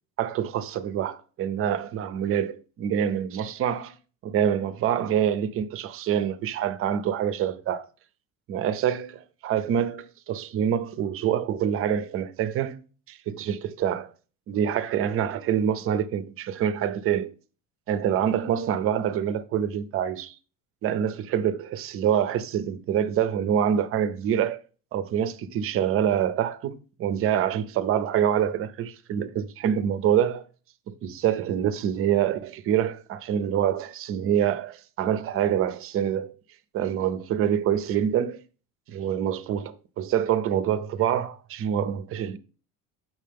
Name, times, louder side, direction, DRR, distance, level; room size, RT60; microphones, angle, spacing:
voice 1, 0.2-4.0 4.2-7.8 8.5-14.1 14.5-17.3 17.9-20.3 20.8-24.6 24.9-30.5 30.9-36.3 36.7-38.4 38.9-42.4, right 9 dB, 40° right, 0.6 m, -26 dB
7.6 x 6.0 x 3.4 m
cardioid pair, 170°, 35 cm